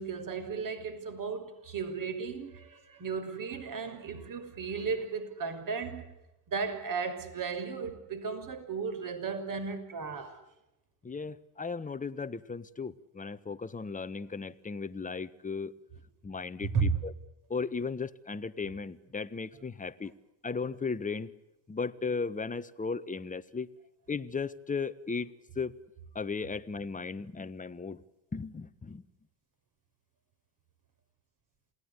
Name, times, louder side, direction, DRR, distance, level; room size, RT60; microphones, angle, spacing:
voice 1, 0.0-6.1 6.5-10.4 16.7-17.0, right 5 dB, 40° right, 6.2 m, -34 dB
voice 2, 11.0-15.7 16.2-17.1 17.5-20.1 20.4-21.3 21.7-23.7 24.1-25.7 26.1-28.0 28.3-29.0, left 4 dB, 15° left, 1.4 m, -36 dB
28.0 x 19.5 x 8.4 m
supercardioid pair, 105°, 50 cm